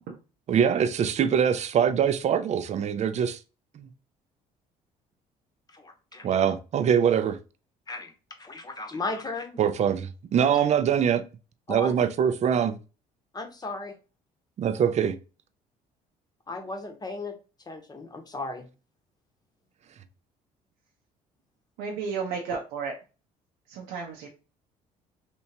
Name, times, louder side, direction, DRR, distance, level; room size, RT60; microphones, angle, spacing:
voice 1, 0.5-3.4 3.7-3.9 6.2-7.4 9.6-11.2 11.7-12.8 14.6-15.2, right 8 dB, 45° right, 0.5 m, -23 dB
voice 2, 5.7-6.3 7.9-8.1 8.4-9.6 11.7-12.0 13.3-14.0 16.5-17.4 17.7-18.7, left 2 dB, 25° left, 0.9 m, -35 dB
voice 3, 21.8-22.9 23.7-24.3, right 5 dB, 80° right, 0.7 m, -32 dB
3.4 x 2.9 x 2.8 m
supercardioid pair, 80°, 16 cm